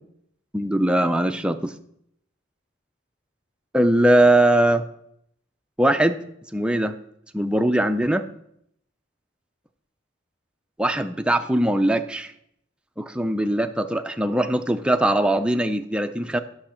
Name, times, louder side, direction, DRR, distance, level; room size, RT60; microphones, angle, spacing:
voice 1, 0.5-1.7 3.7-4.8 5.8-6.2 6.5-7.0 7.3-8.2 10.8-12.3 13.0-16.4, right 1 dB, 5° right, 8 dB, 0.4 m, -21 dB
9.8 x 6.2 x 4.3 m, 0.73 s
head